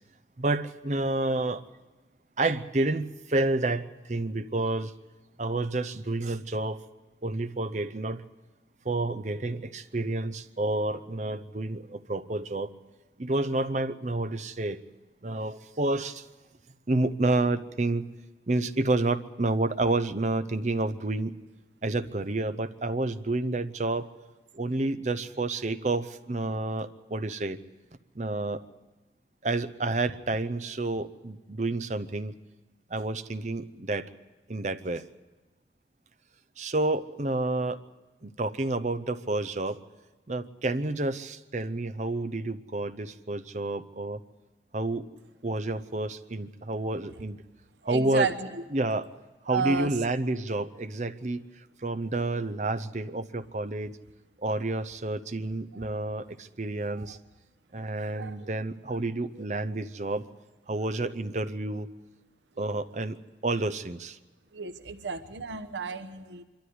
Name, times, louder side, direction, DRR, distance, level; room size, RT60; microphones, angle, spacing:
voice 1, 0.4-1.6 2.4-4.9 5.4-6.8 7.2-8.2 8.8-12.7 13.2-14.8 15.2-16.3 16.9-18.1 18.5-21.4 21.8-24.1 24.5-27.6 28.1-28.6 29.4-32.4 32.9-34.1 34.5-35.1 36.6-37.8 38.2-39.8 40.3-44.2 44.7-45.1 45.4-47.4 47.9-48.4 48.7-49.1 49.4-51.4 51.8-54.0 54.4-57.2 57.7-60.2 60.7-61.9 62.6-63.2 63.4-64.2, right 2 dB, 40° right, 10 dB, 0.7 m, -29 dB
voice 2, 47.8-48.6 49.5-50.0 55.7-55.9 56.8-57.2 58.1-58.5 64.5-66.4, right 5 dB, 90° right, 9 dB, 1.0 m, -32 dB
25.0 x 13.0 x 9.6 m, 1.2 s
head